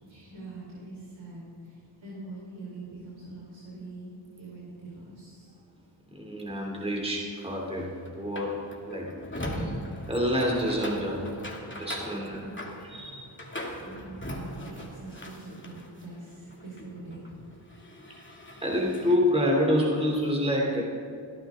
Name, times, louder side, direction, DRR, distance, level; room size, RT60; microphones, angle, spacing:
voice 1, 0.0-4.1 4.4-5.6 12.2-12.7 13.8-17.2, right 2 dB, 75° right, -6 dB, 4.2 m, -43 dB
voice 2, 6.1-9.1 9.4-9.7 10.1-11.3 11.7-12.4 12.8-13.3 18.6-20.8, equal, 10° right, -2 dB, 2.8 m, -28 dB
sound 1, 7.3-16.1 16.4-19.2, left 1 dB, 25° left, 2.4 m, -40 dB
22.5 x 14.5 x 3.7 m, 2.4 s
cardioid pair, 55°, 47 cm